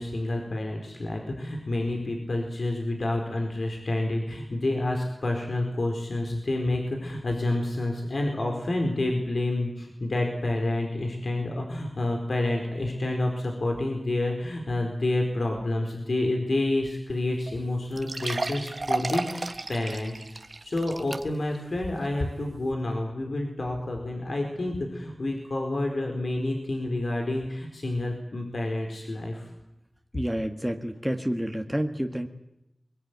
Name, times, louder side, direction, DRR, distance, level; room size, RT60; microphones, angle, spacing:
voice 1, 0.0-20.1 20.6-29.5, left 2 dB, 75° left, 2 dB, 4.5 m, -29 dB
sound 1, 17.1-17.2 17.5-17.6 18.0-21.6 22.0-22.1 22.7-22.8, right 2 dB, 55° right, 1.5 m, -33 dB
voice 2, 30.1-32.3, equal, 5° right, 4 dB, 1.9 m, -29 dB
22.5 x 22.5 x 9.5 m, 0.88 s
wide cardioid pair, 70°, 0 cm